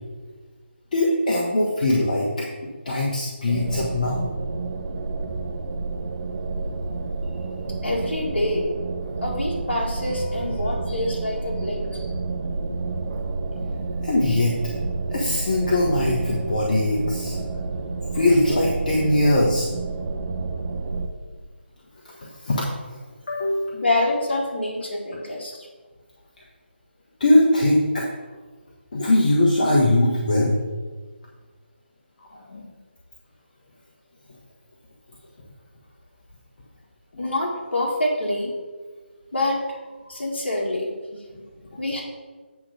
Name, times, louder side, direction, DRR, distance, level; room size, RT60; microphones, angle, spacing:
voice 1, 0.9-2.4 2.8-4.2 14.0-14.6 15.1-17.4 18.1-19.7 22.2-22.7 23.3-23.7 27.2-28.0 28.9-30.5 32.5-32.7, left 1 dB, 40° left, -3 dB, 1.3 m, -21 dB
sound 1, 3.5-21.1, right 3 dB, 45° right, 0.9 m, -29 dB
voice 2, 7.8-8.7 9.2-12.1 23.7-25.7 37.2-38.5 39.3-42.0, left 1 dB, 65° left, -4 dB, 2.1 m, -26 dB
8.7 x 3.8 x 6.6 m, 1.4 s
figure-of-eight pair, 160°, 6 cm